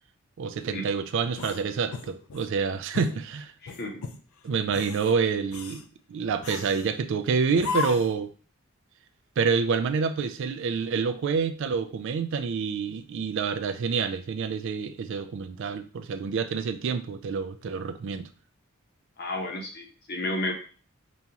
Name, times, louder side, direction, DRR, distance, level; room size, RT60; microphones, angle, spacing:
voice 1, 0.4-3.5 4.4-5.8 6.1-8.3 9.4-18.3, right 5 dB, 60° right, 11 dB, 0.3 m, -27 dB
sound 1, 1.3-2.5 2.9-3.2 3.7-4.2 4.6-5.1 5.5-5.9 6.4-6.9 7.6-8.2, left 5 dB, 80° left, 0.4 m, -35 dB
voice 2, 3.6-4.0 19.2-20.5, left 1 dB, 50° left, 2 dB, 0.8 m, -32 dB
5.1 x 2.3 x 2.8 m, 0.39 s
head